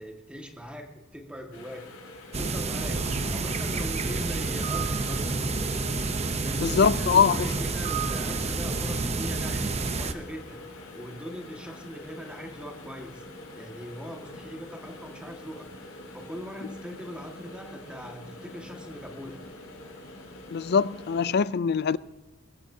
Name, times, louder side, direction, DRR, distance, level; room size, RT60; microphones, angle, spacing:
voice 1, 0.0-1.9 2.4-5.4 6.4-13.2 13.5-19.4, equal, 5° right, 1.8 m, -41 dB
sound 1, 1.5-21.3, left 2 dB, 85° left, 4.5 m, -45 dB
sound 2, 2.3-10.1, right 3 dB, 30° right, 0.8 m, -29 dB
sound 3, 2.6-9.4, equal, 45° right, 1.9 m, -42 dB
voice 2, 6.6-7.4 20.5-22.0, left 6 dB, 50° left, 0.4 m, -23 dB
22.5 x 15.0 x 2.8 m
head